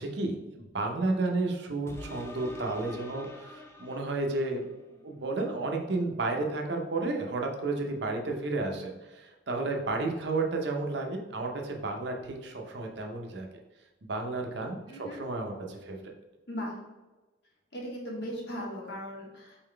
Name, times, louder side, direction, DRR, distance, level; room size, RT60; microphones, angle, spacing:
voice 1, 0.0-4.6 5.0-13.5 14.0-16.0, right 2 dB, 60° right, 2 dB, 0.6 m, -32 dB
sound 1, 1.9-4.8 5.3-5.4, left 1 dB, 15° left, 0.4 m, -46 dB
voice 2, 14.9-15.2 16.5-16.7 17.7-19.6, equal, 60° left, -3 dB, 1.3 m, -38 dB
4.1 x 3.8 x 3.2 m, 1.1 s
head